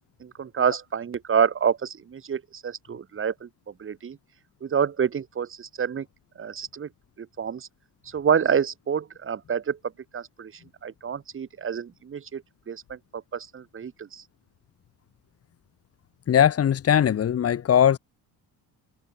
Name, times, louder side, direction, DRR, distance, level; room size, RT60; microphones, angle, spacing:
voice 1, 0.2-3.5 3.8-4.2 4.6-6.0 6.4-6.9 7.2-7.7 8.1-9.8 10.1-10.5 10.8-12.4 12.7-14.2, right 7 dB, 30° right, 6.9 m, -27 dB
voice 2, 16.3-18.0, left 9 dB, 35° left, 2.2 m, -20 dB
cardioid pair, 155°, 39 cm